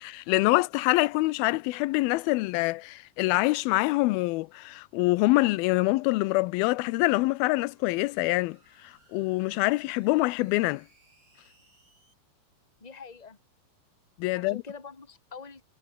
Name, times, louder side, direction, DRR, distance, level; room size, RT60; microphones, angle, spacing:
voice 1, 0.0-10.9 14.2-14.6, left 21 dB, 80° left, 2.5 m, -25 dB
sound 1, 6.8-12.1, right 2 dB, 30° right, 8.4 m, -64 dB
voice 2, 12.8-13.4 14.3-15.7, left 5 dB, 10° left, 2.6 m, -45 dB
omnidirectional pair, 4.3 m